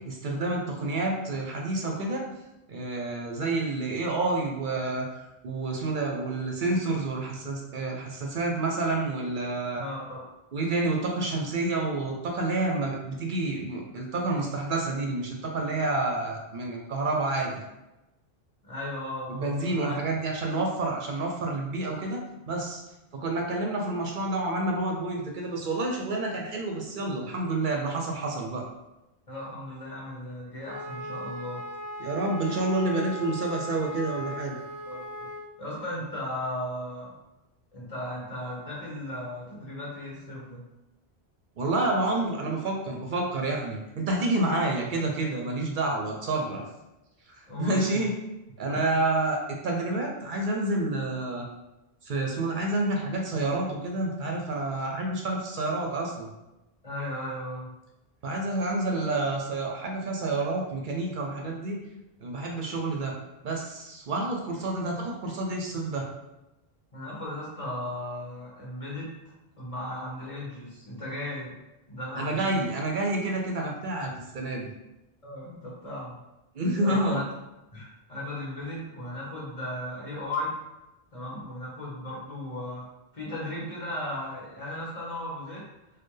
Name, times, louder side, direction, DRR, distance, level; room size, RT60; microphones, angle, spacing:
voice 1, 0.0-2.3 2.7-9.8 10.5-17.6 19.3-22.8 23.1-28.6 32.0-34.6 41.6-46.6 47.3-48.1 48.6-51.5 52.0-56.3 58.2-61.8 62.2-63.1 63.4-66.1 72.1-74.7 76.5-77.2, right 2 dB, 60° right, 0 dB, 0.7 m, -29 dB
voice 2, 9.8-10.2 18.6-20.0 29.3-31.6 34.2-34.3 34.9-35.3 35.6-37.1 37.7-40.6 47.5-48.1 48.7-48.8 56.8-57.7 66.9-69.1 69.6-71.5 71.9-72.7 75.2-76.2 76.8-77.2 77.7-80.6 81.1-82.8 83.1-85.7, left 1 dB, 35° left, -5 dB, 1.3 m, -36 dB
Wind instrument woodwind instrument, 30.6-35.4, equal, 10° left, 1.0 m, -38 dB
4.3 x 2.2 x 3.2 m, 0.98 s
omnidirectional pair, 1.1 m